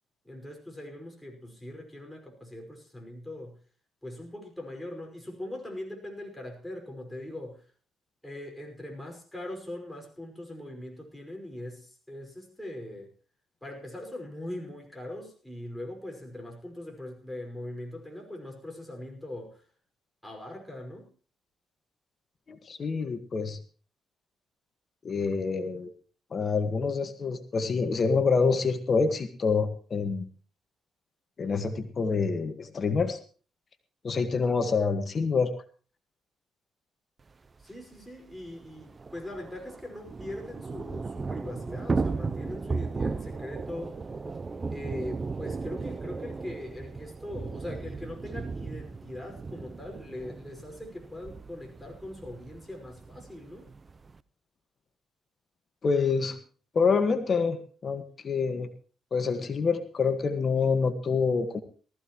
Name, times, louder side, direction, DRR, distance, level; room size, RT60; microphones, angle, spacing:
voice 1, 0.2-3.6 4.0-7.7 8.2-13.1 13.6-19.6 20.2-21.1 37.6-44.0 44.7-53.7 59.4-59.5, left 1 dB, 5° left, 1 dB, 5.5 m, -41 dB
voice 2, 22.5-23.6 25.0-25.9 26.3-30.3 31.4-33.2 34.0-35.5 55.8-56.4 56.7-58.7 59.1-61.6, left 5 dB, 45° left, 8 dB, 1.6 m, -27 dB
Thunder / Rain, 37.6-37.7 37.9-38.0 38.3-54.2, right 4 dB, 30° right, 0.6 m, -36 dB
19.0 x 14.5 x 3.1 m, 0.39 s
cardioid pair, 90°, 0 cm